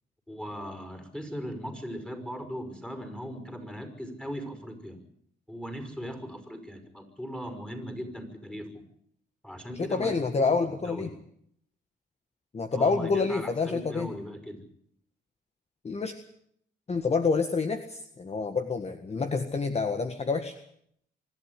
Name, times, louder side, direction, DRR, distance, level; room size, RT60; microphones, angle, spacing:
voice 1, 0.3-5.0 5.5-8.8 9.4-11.1 12.7-14.7, equal, 5° left, 7 dB, 5.5 m, -39 dB
voice 2, 9.8-11.1 12.5-14.1 15.8-16.2 16.9-20.5, left 4 dB, 30° left, 7 dB, 1.7 m, -28 dB
25.0 x 12.0 x 9.6 m, 0.70 s
cardioid pair, 90°, 20 cm